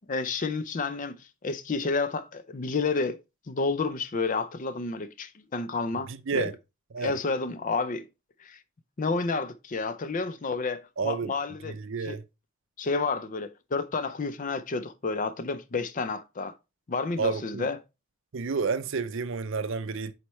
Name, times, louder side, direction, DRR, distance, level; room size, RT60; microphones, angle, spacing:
voice 1, 0.1-3.2 3.5-6.5 7.0-8.1 8.4-8.6 9.0-12.2 12.8-16.6 16.9-17.8, left 4 dB, 40° left, 0.5 m, -30 dB
voice 2, 6.1-6.5 6.9-7.1 11.0-11.3 11.6-12.2 17.2-17.7 18.3-20.1, right 5 dB, 60° right, 0.6 m, -30 dB
7.9 x 4.3 x 3.1 m
head